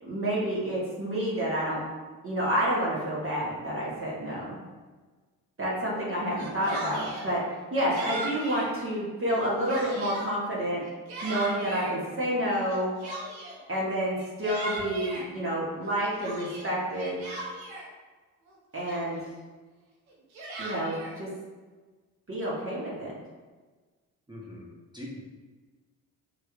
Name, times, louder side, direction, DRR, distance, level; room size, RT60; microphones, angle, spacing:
voice 1, 0.0-1.8 2.2-4.6 5.6-7.4 7.7-10.8 11.2-12.9 13.7-17.2 18.7-19.2 20.6-21.3 22.3-23.1, equal, 30° right, -6 dB, 1.3 m, -29 dB
Yell, 6.2-7.3 7.9-8.7 9.2-10.3 10.8-11.9 12.7-13.6 14.2-15.3 15.8-17.9 18.5-18.6 18.8-19.3 20.1-21.1, right 2 dB, 75° right, 0.8 m, -38 dB
voice 2, 24.3-25.2, left 1 dB, 10° right, -4 dB, 0.9 m, -42 dB
3.3 x 3.1 x 2.4 m, 1.3 s
hypercardioid pair, 45°, 44 cm